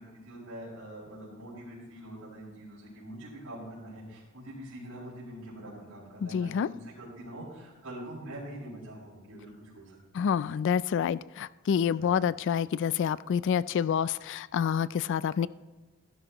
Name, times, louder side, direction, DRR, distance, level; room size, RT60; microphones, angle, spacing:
voice 1, 0.2-10.3 12.0-12.1, right 1 dB, 85° right, -8 dB, 4.6 m, -44 dB
voice 2, 6.2-6.7 10.1-15.5, left 7 dB, 55° left, 18 dB, 0.3 m, -28 dB
15.5 x 12.0 x 3.0 m, 1.3 s
head